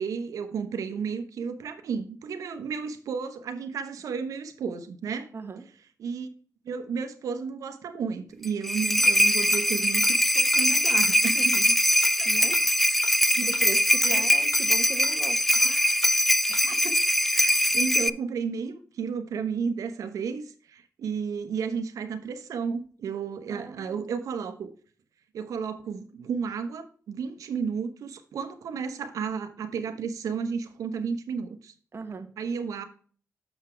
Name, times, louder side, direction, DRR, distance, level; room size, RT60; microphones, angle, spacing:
voice 1, 0.0-5.3 6.0-6.3 6.6-11.5 12.2-12.5 13.4-13.5 14.0-14.2 15.6-16.0 16.5-17.0 17.3-24.7 25.3-31.7 32.4-32.8, right 6 dB, 85° right, 1.0 m, -33 dB
voice 2, 5.3-5.7 11.3-12.6 13.4-15.4 23.5-24.3 31.9-32.3, right 4 dB, 45° right, 1.4 m, -39 dB
sound 1, 8.4-18.1, equal, 5° left, 0.4 m, -22 dB
sound 2, 9.0-9.1 9.5-9.6 10.0-10.1 10.5-10.6 11.0-11.1 11.5-11.6 12.0-12.1 12.5-12.6 13.0-13.1 13.5-13.6 14.0-14.1 14.5-14.6 15.0-15.1 15.5-15.6 16.0-16.1 16.5-16.6, left 5 dB, 75° left, 1.1 m, -40 dB
7.1 x 5.8 x 4.5 m
cardioid pair, 65°, 6 cm